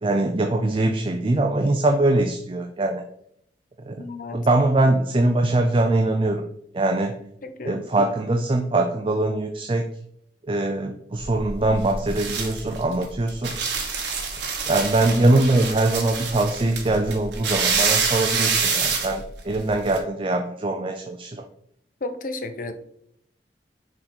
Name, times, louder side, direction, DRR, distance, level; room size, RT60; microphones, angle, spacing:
voice 1, 0.0-3.0 3.8-4.0 4.3-6.5 6.7-7.1 7.6-9.8 10.5-13.5 14.7-21.4, right 2 dB, 30° right, 4 dB, 0.4 m, -22 dB
voice 2, 4.0-4.5 7.4-7.8 22.0-22.7, left 2 dB, 50° left, 8 dB, 0.7 m, -33 dB
sound 1, 11.2-20.0, right 5 dB, 80° right, 1.3 m, -26 dB
6.1 x 3.8 x 4.4 m, 0.71 s
head